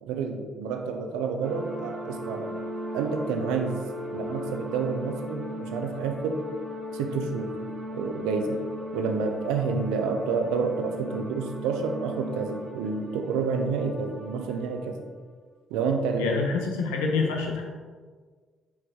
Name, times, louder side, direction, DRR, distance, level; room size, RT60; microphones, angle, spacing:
voice 1, 0.0-2.6 2.9-3.8 4.1-6.4 6.9-7.5 7.9-8.6 8.9-15.0 15.7-16.4, right 5 dB, 80° right, 4 dB, 0.6 m, -29 dB
sound 1, 1.4-15.0, equal, 40° right, 1.3 m, -37 dB
voice 2, 16.2-17.6, left 4 dB, 85° left, 1 dB, 0.9 m, -26 dB
6.2 x 4.7 x 3.6 m, 1.5 s
hypercardioid pair, 50°, 0 cm